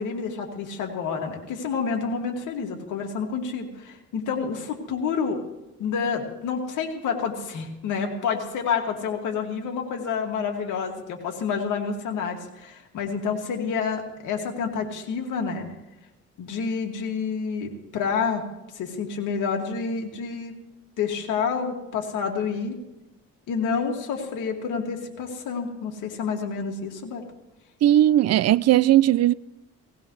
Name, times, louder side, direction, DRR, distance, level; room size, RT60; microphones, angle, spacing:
voice 1, 0.0-5.4 5.8-15.7 16.4-18.4 18.7-20.5 21.0-22.8 23.5-27.2, left 6 dB, 85° left, 2.4 m, -28 dB
voice 2, 27.8-29.3, right 13 dB, 55° right, 0.5 m, -18 dB
18.0 x 18.0 x 3.3 m
cardioid pair, 90°, 30 cm